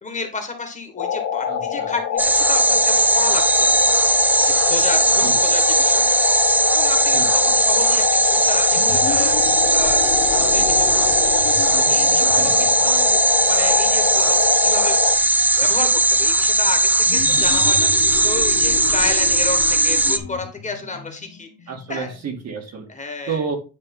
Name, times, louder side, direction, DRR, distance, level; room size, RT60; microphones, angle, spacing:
voice 1, 0.0-3.9 4.4-6.0 6.7-8.0 8.3-9.4 9.6-10.7 11.5-11.6 11.9-13.2 13.5-14.9 15.6-21.5 21.9-22.1 22.9-23.4, left 3 dB, 20° left, 5 dB, 1.5 m, -31 dB
sound 1, 1.0-15.2, left 8 dB, 60° left, 2.1 m, -24 dB
voice 2, 1.5-1.9 5.2-5.4 7.1-7.5 11.9-12.7 21.7-22.9 23.3-23.6, right 5 dB, 45° right, 2 dB, 2.1 m, -31 dB
sound 2, 2.2-20.2, right 2 dB, 5° right, 0.4 m, -18 dB
sound 3, 8.7-14.0 17.1-22.4, left 7 dB, 85° left, 1.3 m, -33 dB
9.6 x 3.5 x 5.4 m, 0.34 s
cardioid pair, 155°, 35 cm